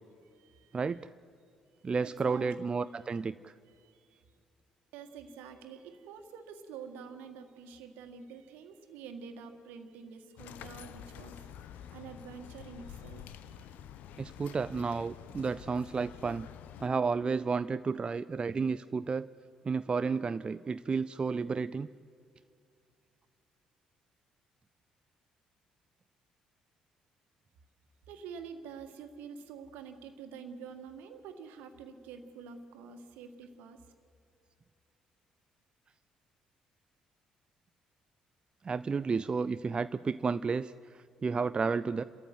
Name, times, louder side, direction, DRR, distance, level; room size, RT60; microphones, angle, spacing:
voice 1, 0.2-1.0 1.7-3.2 3.7-4.2 4.9-13.7 28.1-33.8, right 6 dB, 65° right, 7 dB, 1.7 m, -48 dB
voice 2, 0.7-1.1 1.8-3.5 14.2-16.5 16.8-19.3 19.6-21.9 38.6-42.0, right 5 dB, 30° right, 14 dB, 0.4 m, -32 dB
sound 1, 10.4-16.9, left 9 dB, 60° left, 0.7 m, -48 dB
30.0 x 14.0 x 7.9 m, 2.4 s
figure-of-eight pair, 45°, 3 cm